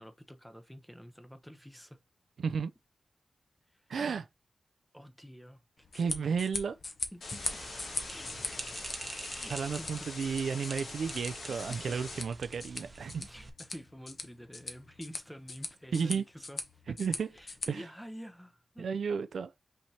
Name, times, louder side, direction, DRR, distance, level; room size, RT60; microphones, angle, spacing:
voice 1, 0.0-2.0 3.7-3.9 4.9-6.4 7.1-7.6 8.0-8.9 9.2-10.2 11.5-12.0 13.2-16.6 16.9-17.0 17.3-18.9, equal, 5° left, 0.7 m, -49 dB
voice 2, 2.4-2.7 3.9-4.3 5.9-6.8 9.5-13.2 15.9-16.2 16.9-17.3 17.7-17.8 18.8-19.5, right 6 dB, 80° right, 0.4 m, -33 dB
sound 1, 5.8-17.7, left 3 dB, 45° left, 0.9 m, -42 dB
sound 2, 7.2-12.2, left 3 dB, 75° left, 1.7 m, -44 dB
sound 3, 7.4-13.5, right 2 dB, 30° right, 0.8 m, -46 dB
5.7 x 3.2 x 2.8 m
wide cardioid pair, 130°, 0 cm